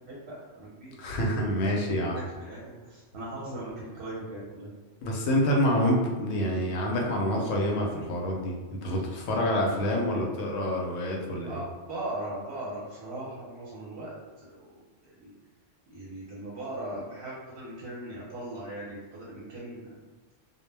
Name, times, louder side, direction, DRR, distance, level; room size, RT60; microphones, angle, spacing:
voice 1, 0.0-1.0 2.4-4.7 11.4-15.3 15.9-19.9, right 1 dB, 60° right, -6 dB, 0.8 m, -39 dB
voice 2, 1.0-2.2 5.0-11.6, equal, 85° left, 0 dB, 0.9 m, -27 dB
2.2 x 2.0 x 3.2 m, 1.3 s
omnidirectional pair, 1.3 m